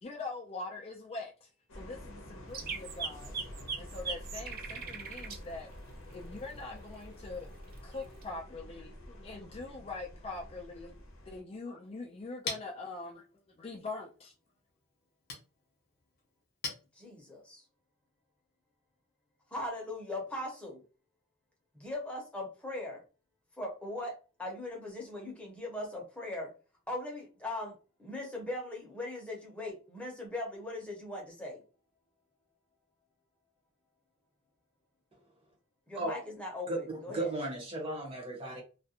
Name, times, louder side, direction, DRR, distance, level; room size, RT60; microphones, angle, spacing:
voice 1, 0.0-3.3 3.8-5.7 6.1-7.5 7.8-10.9 11.3-13.2 13.6-14.3, left 3 dB, 30° left, 0.4 m, -43 dB
sound 1, 1.7-11.4, equal, 75° left, 0.6 m, -48 dB
sound 2, 2.5-5.4 7.7-8.2, right 5 dB, 45° right, 0.4 m, -38 dB
Chink clink, 11.8-17.5, left 4 dB, 50° left, 0.8 m, -46 dB
voice 2, 17.0-17.6 19.5-20.8 21.7-23.0 23.6-26.5 26.9-31.6 35.9-37.3, left 1 dB, 5° left, 0.7 m, -39 dB
voice 3, 36.7-38.6, right 2 dB, 30° right, 0.8 m, -35 dB
2.4 x 2.1 x 2.8 m
head